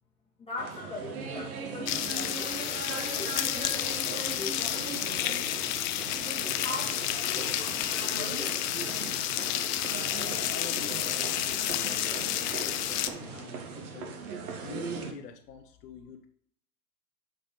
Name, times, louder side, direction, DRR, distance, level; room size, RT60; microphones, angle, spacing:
voice 1, 0.4-2.5 2.9-4.9 5.2-5.7 6.2-8.6, left 2 dB, 10° left, -4 dB, 2.2 m, -42 dB
sound 1, 0.6-15.1, right 5 dB, 60° right, 1.9 m, -39 dB
sound 2, 1.9-13.1, left 13 dB, 30° left, 0.5 m, -31 dB
sound 3, 2.8-13.4, equal, 5° right, 2.0 m, -48 dB
voice 2, 10.1-14.2 14.6-16.3, left 6 dB, 65° left, 4 dB, 1.1 m, -46 dB
8.3 x 5.1 x 4.3 m, 0.65 s
hypercardioid pair, 105°, 49 cm